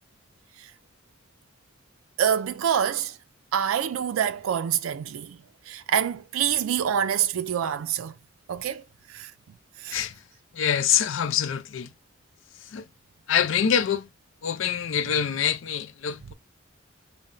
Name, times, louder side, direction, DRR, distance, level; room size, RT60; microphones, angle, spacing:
voice 1, 2.2-3.2 3.5-8.1 8.5-9.3 9.8-10.0 15.2-15.3 16.2-16.3, right 8 dB, 85° right, 0.4 m, -26 dB
voice 2, 9.9-10.2 10.5-11.9 12.6-12.9 13.3-14.1 14.4-16.3, left 8 dB, 70° left, 0.4 m, -25 dB
4.1 x 2.1 x 3.7 m
head